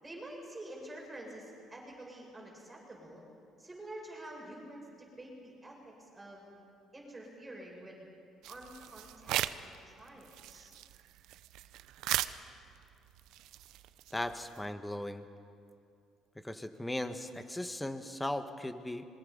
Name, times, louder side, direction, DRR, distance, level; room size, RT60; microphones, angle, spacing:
voice 1, 0.0-3.2 3.6-6.5 6.9-8.0 8.5-10.7, right 1 dB, 15° right, -2 dB, 6.7 m, -48 dB
sound 1, 8.4-9.8 10.1-14.7, right 14 dB, 80° right, 0.6 m, -38 dB
voice 2, 14.1-15.3 16.4-19.0, left 1 dB, 10° left, 9 dB, 1.5 m, -37 dB
26.0 x 22.5 x 5.5 m, 2.5 s
supercardioid pair, 85°, 0 cm